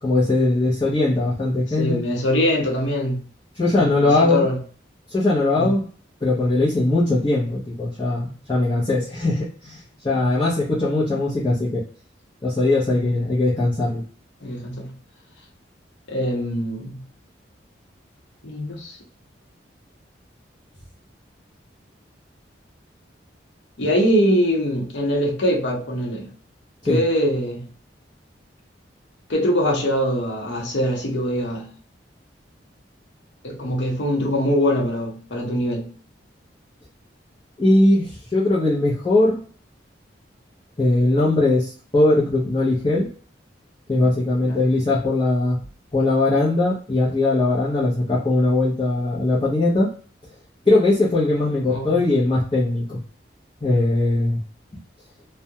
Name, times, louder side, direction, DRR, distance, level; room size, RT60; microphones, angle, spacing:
voice 1, 0.0-2.0 3.6-4.4 5.1-5.8 6.2-9.8 10.0-11.8 12.4-14.0 26.8-27.0 37.6-39.4 40.8-43.1 43.9-45.6 45.9-49.9 50.7-53.0 53.6-54.4, left 2 dB, 25° left, 0.6 m, -20 dB
voice 2, 1.7-3.2 3.8-4.6 5.5-5.7 8.2-8.4 10.1-10.3 14.4-14.9 16.1-17.0 18.4-19.0 23.8-26.3 26.8-27.7 29.3-31.7 33.4-35.9 44.4-44.6 51.7-52.0 53.6-53.8, equal, 75° left, 0.8 m, -23 dB
2.3 x 2.1 x 2.7 m
head